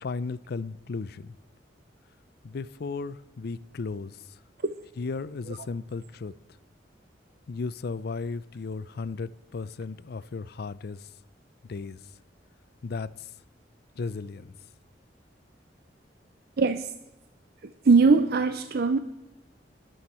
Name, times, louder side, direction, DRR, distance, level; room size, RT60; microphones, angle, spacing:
voice 1, 0.0-1.3 2.4-4.2 5.0-6.3 7.5-11.1 11.7-12.0 12.8-13.3 14.0-14.5, left 4 dB, 60° left, 0.5 m, -35 dB
voice 2, 16.6-16.9 17.8-19.0, right 4 dB, 60° right, 0.6 m, -21 dB
20.0 x 7.9 x 4.3 m
head